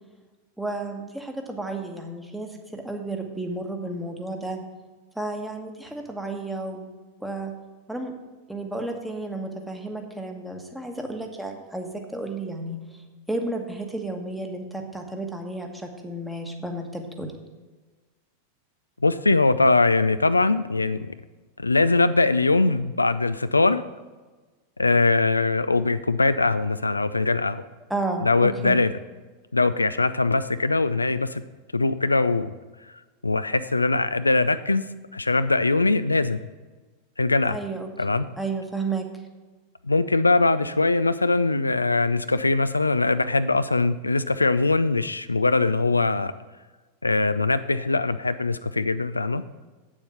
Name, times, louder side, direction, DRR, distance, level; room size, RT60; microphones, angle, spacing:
voice 1, 0.6-4.6 5.1-6.9 7.2-7.5 7.9-8.1 8.5-17.3 27.9-28.8 37.4-37.9 38.4-39.1, right 2 dB, 5° right, 3 dB, 1.3 m, -32 dB
voice 2, 19.0-21.1 21.6-23.8 24.8-27.6 28.2-28.9 29.5-31.4 31.7-32.5 33.2-34.9 35.1-36.4 37.2-37.6 38.0-38.3 39.8-46.3 47.0-49.4, left 3 dB, 80° left, 13 dB, 0.3 m, -21 dB
8.5 x 7.2 x 5.7 m, 1.3 s
figure-of-eight pair, 90°, 0 cm